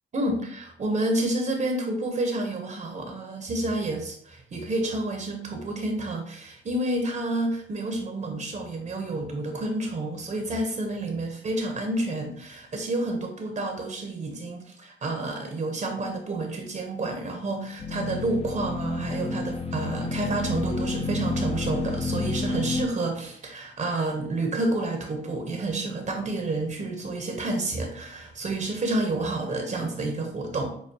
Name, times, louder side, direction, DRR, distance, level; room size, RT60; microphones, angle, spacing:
voice 1, 0.1-30.9, right 2 dB, 40° right, 3 dB, 0.8 m, -29 dB
sound 1, 17.8-22.8, left 3 dB, 30° left, 0.6 m, -30 dB
6.5 x 2.3 x 2.8 m, 0.63 s
cardioid pair, 90°, 20 cm